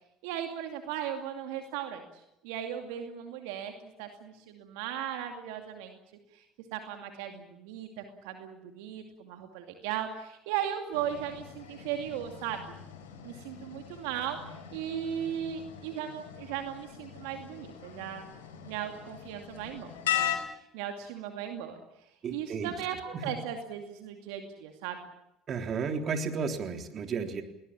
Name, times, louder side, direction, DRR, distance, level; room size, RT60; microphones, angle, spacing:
voice 1, 0.2-2.0 2.4-3.7 4.0-6.0 6.3-6.4 6.7-12.7 13.2-18.2 18.6-20.3 20.7-21.8 22.3-25.1, right 9 dB, 75° right, 5 dB, 2.4 m, -37 dB
sound 1, 10.9-20.4, left 11 dB, 85° left, 4.7 m, -39 dB
voice 2, 22.2-22.7 23.1-23.2 25.5-27.4, right 5 dB, 45° right, 5 dB, 3.6 m, -33 dB
21.5 x 20.0 x 8.8 m, 0.85 s
hypercardioid pair, 70°, 0 cm